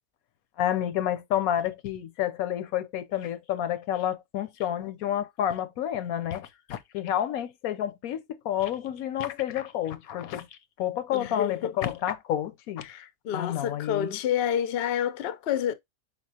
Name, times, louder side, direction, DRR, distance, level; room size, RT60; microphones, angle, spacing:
voice 1, 0.6-10.5 10.8-12.8 13.3-14.2, left 11 dB, 80° left, 1.1 m, -29 dB
voice 2, 11.1-11.7 12.8-15.7, left 9 dB, 60° left, 0.7 m, -29 dB
4.3 x 4.2 x 2.7 m
omnidirectional pair, 1.5 m